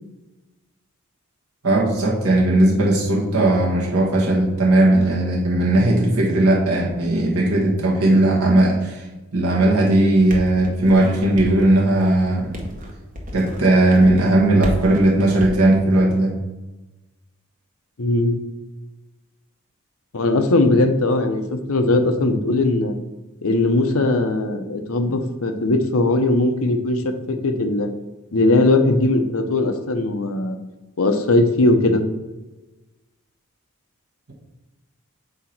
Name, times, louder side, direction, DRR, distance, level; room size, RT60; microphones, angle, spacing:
voice 1, 1.6-12.5 13.3-16.3, right 1 dB, 85° right, -3 dB, 1.4 m, -17 dB
sound 1, 10.1-15.6, equal, 35° right, 1.1 m, -34 dB
voice 2, 18.0-18.4 20.1-22.9 23.4-27.9 28.3-30.6 31.0-32.1, left 2 dB, 75° left, 6 dB, 0.7 m, -19 dB
8.1 x 2.9 x 5.9 m, 1.1 s
head